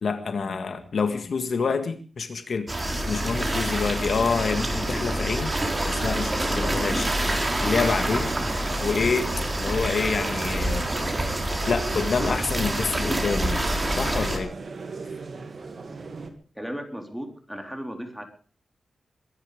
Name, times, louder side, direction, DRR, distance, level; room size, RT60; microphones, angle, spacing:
voice 1, 0.0-2.7 3.1-5.5 5.9-7.1 7.6-8.3 8.8-9.3 9.6-10.9 11.7-14.5, left 5 dB, 65° left, 9 dB, 1.8 m, -27 dB
sound 1, 2.7-14.4, right 1 dB, 25° right, 4.3 m, -27 dB
sound 2, 5.1-16.3, right 4 dB, 55° right, 2.6 m, -38 dB
voice 2, 16.6-18.2, equal, 5° right, 4 dB, 4.0 m, -35 dB
22.5 x 11.0 x 5.1 m, 0.40 s
wide cardioid pair, 85°, 0 cm